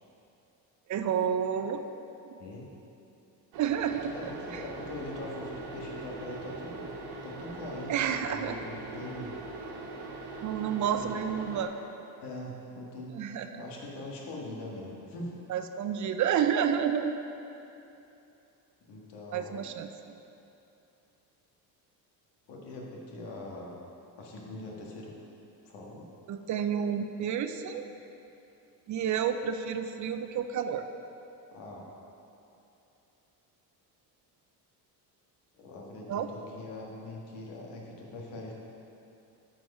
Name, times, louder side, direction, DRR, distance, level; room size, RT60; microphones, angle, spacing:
voice 1, 0.9-1.8 2.2-2.4 3.6-4.1 4.5-4.6 7.9-8.6 10.4-11.7 13.1-13.6 15.5-17.2 19.3-19.9 26.3-27.9 28.9-30.8 36.1-36.3, right 8 dB, 45° right, 8 dB, 0.5 m, -30 dB
sound 1, 3.5-11.7, right 3 dB, 85° right, 1.4 m, -41 dB
voice 2, 4.1-7.0 7.2-9.3 10.9-11.2 12.2-13.1 13.5-15.3 18.9-19.6 22.5-23.8 24.2-25.1 25.6-26.0 31.5-31.8 35.5-38.5, left 2 dB, 80° left, -2 dB, 1.8 m, -42 dB
9.1 x 4.8 x 5.5 m, 2.9 s
cardioid pair, 110°, 40 cm